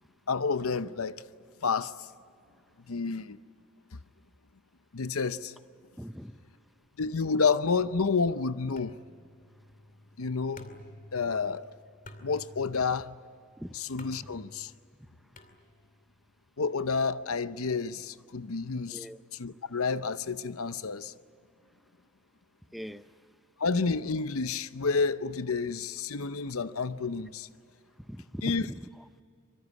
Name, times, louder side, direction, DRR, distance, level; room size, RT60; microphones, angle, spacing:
voice 1, 0.3-1.2 1.6-2.1 2.9-3.4 4.9-5.5 7.0-9.0 10.2-10.7 11.1-11.7 12.2-13.1 13.7-14.7 16.6-19.1 19.3-21.1 23.6-27.5 28.4-28.6, left 4 dB, 85° left, 0.8 m, -30 dB
voice 2, 6.0-6.4 13.6-13.7 18.9-19.2 22.7-23.0 28.1-29.2, equal, ahead, 0.5 m, -40 dB
sound 1, 8.8-16.1, left 1 dB, 40° left, 2.5 m, -52 dB
25.0 x 24.0 x 8.4 m
head